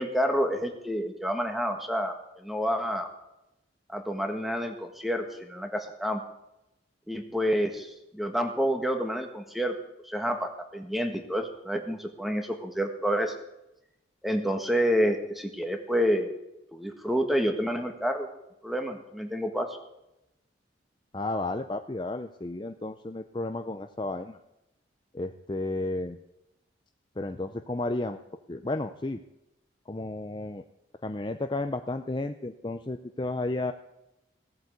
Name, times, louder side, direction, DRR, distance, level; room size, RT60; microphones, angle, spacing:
voice 1, 0.0-3.1 3.9-6.2 7.1-9.7 10.0-13.3 14.2-16.3 16.7-18.3 18.6-19.8, equal, ahead, 5 dB, 1.5 m, -28 dB
voice 2, 21.1-24.4 25.1-26.2 27.2-28.2 28.5-29.2 29.9-30.6 31.0-33.7, left 2 dB, 25° left, 8 dB, 0.5 m, -32 dB
17.0 x 8.1 x 8.0 m, 0.90 s
head